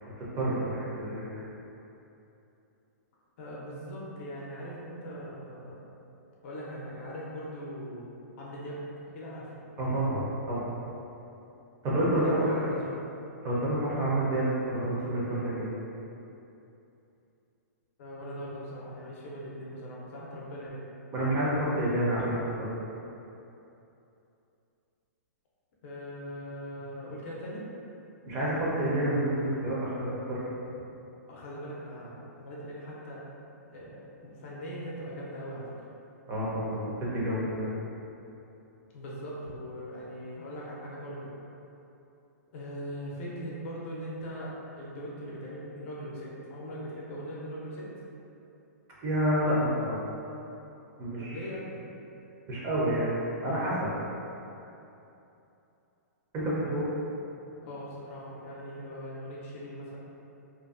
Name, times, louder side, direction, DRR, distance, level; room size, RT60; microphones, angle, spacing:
voice 1, 0.0-1.4 9.8-10.7 11.8-12.6 13.4-15.7 21.1-22.7 28.2-30.4 36.3-37.7 49.0-50.0 51.0-51.4 52.5-53.2 53.4-53.9 56.3-56.9, right 1 dB, 25° right, -7 dB, 0.5 m, -29 dB
voice 2, 3.4-5.8 6.4-8.0 8.4-8.8 9.1-9.6 12.2-13.0 18.0-20.8 25.8-27.6 31.3-33.2 33.7-35.9 38.9-41.3 42.5-47.9 51.2-51.8 57.6-60.0, equal, 50° left, -5 dB, 0.6 m, -40 dB
2.5 x 2.2 x 2.4 m, 2.8 s
hypercardioid pair, 150°, 9 cm